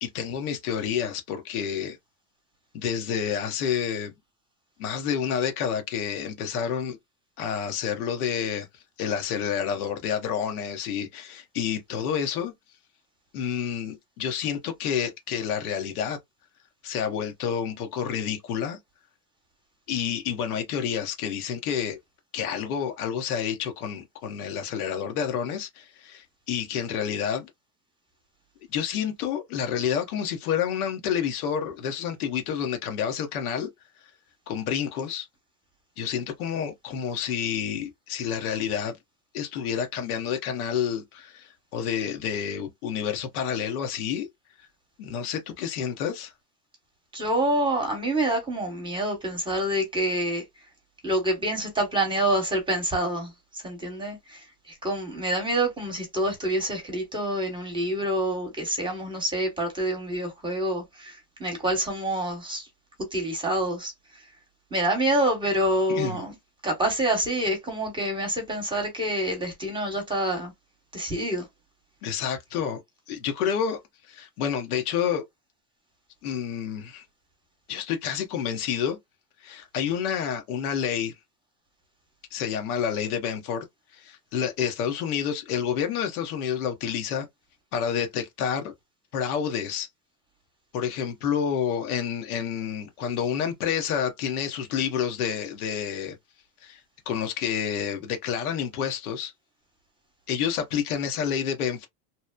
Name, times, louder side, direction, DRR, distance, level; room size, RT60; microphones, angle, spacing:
voice 1, 0.0-2.0 2.7-4.1 4.8-7.0 7.4-8.7 9.0-12.5 13.3-16.2 16.8-18.8 19.9-22.0 22.3-27.5 28.7-33.7 34.5-35.3 36.0-39.0 39.3-44.3 45.0-46.3 65.9-66.2 72.0-72.8 73.1-73.8 74.1-75.2 76.2-77.0 77.7-79.0 79.4-81.1 82.3-83.6 83.9-87.3 87.7-88.7 89.1-89.9 90.7-96.2 96.6-96.8 97.1-99.3 100.3-101.9, left 8 dB, 80° left, 1.0 m, -29 dB
voice 2, 47.1-50.4 51.0-62.6 63.1-63.9 64.7-66.3 66.6-70.5 70.9-71.5, right 1 dB, 10° right, 1.0 m, -27 dB
2.9 x 2.0 x 2.2 m
supercardioid pair, 130°, 44 cm